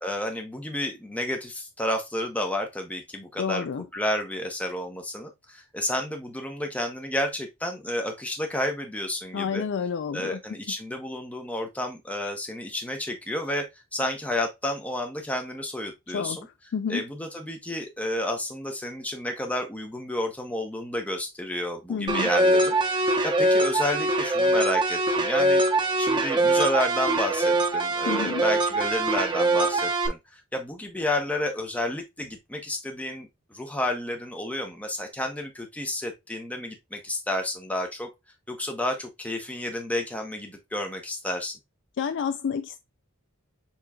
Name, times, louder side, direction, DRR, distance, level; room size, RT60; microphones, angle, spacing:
voice 1, 0.0-3.7 3.9-9.6 10.1-13.7 13.9-16.5 16.9-25.6 26.0-38.1 38.5-41.6, left 1 dB, 5° left, 0.8 m, -31 dB
voice 2, 3.4-3.8 9.3-10.4 16.1-16.4 16.7-17.0 21.9-22.3 28.1-28.4 42.0-42.8, left 6 dB, 55° left, 0.4 m, -29 dB
sound 1, 22.1-30.1, right 2 dB, 20° right, 0.9 m, -23 dB
7.1 x 3.1 x 2.3 m
head